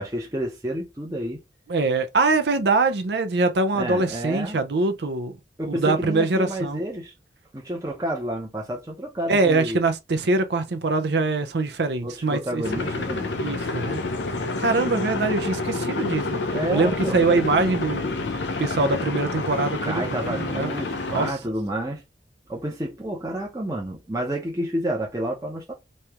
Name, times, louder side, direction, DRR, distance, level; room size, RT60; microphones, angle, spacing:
voice 1, 0.0-1.4 3.7-4.6 5.6-7.1 7.5-9.8 12.0-13.4 16.5-17.2 19.6-22.0 22.5-25.7, right 1 dB, 20° right, 0.7 m, -30 dB
voice 2, 1.7-5.3 5.7-6.8 9.3-12.9 13.4-14.0 14.6-18.1 18.6-20.7 21.1-21.3, right 3 dB, 75° right, 0.6 m, -23 dB
sound 1, 12.6-21.3, left 3 dB, 90° left, 0.6 m, -28 dB
3.1 x 2.9 x 3.5 m
head